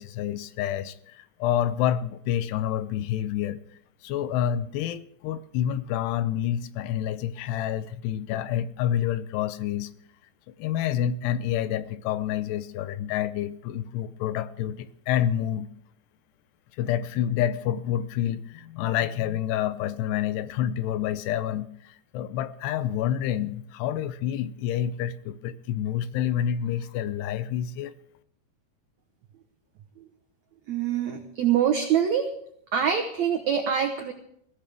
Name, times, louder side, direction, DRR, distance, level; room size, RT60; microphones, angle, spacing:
voice 1, 0.0-3.6 4.0-9.9 10.6-15.7 16.8-27.9, left 10 dB, 85° left, 2.8 m, -28 dB
voice 2, 30.7-32.3 32.7-34.1, right 8 dB, 75° right, 1.7 m, -24 dB
21.0 x 16.0 x 3.5 m
omnidirectional pair, 4.8 m